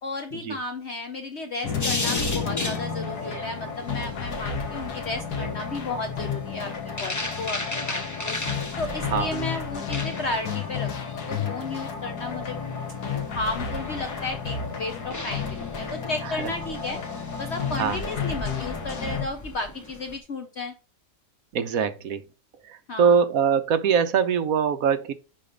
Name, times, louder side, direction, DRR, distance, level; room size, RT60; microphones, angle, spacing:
voice 1, 0.0-6.7 7.0-8.4 8.8-12.6 13.3-17.0 17.4-20.7 22.9-23.2, left 3 dB, 50° left, 1.0 m, -33 dB
sound 1, 1.6-19.2, left 5 dB, 85° left, 1.9 m, -32 dB
sound 2, 1.8-20.2, left 2 dB, 25° left, 0.4 m, -37 dB
voice 2, 21.5-22.2 22.7-25.1, right 6 dB, 65° right, 1.2 m, -23 dB
9.9 x 3.4 x 5.1 m
omnidirectional pair, 1.7 m